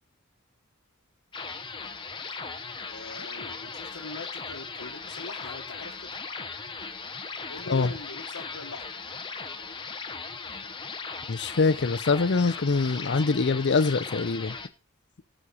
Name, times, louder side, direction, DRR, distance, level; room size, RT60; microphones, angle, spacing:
sound 1, 1.3-14.7, left 4 dB, 25° left, 1.0 m, -38 dB
voice 1, 2.9-6.1 7.5-9.1, left 3 dB, 90° left, 1.3 m, -42 dB
voice 2, 11.3-14.6, left 4 dB, 55° left, 0.6 m, -24 dB
18.0 x 6.4 x 4.1 m
head